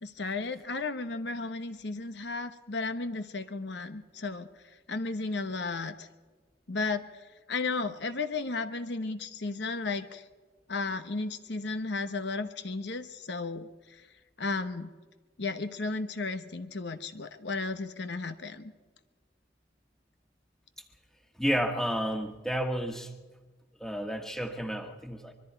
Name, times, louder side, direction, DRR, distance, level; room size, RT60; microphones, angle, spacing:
voice 1, 0.0-6.1 6.7-10.2 10.7-14.1 14.4-14.9 15.4-18.7, left 3 dB, 65° left, 10 dB, 1.0 m, -34 dB
voice 2, 21.4-23.1 23.8-25.3, equal, 5° left, 5 dB, 1.5 m, -31 dB
25.0 x 22.5 x 4.6 m, 1.3 s
head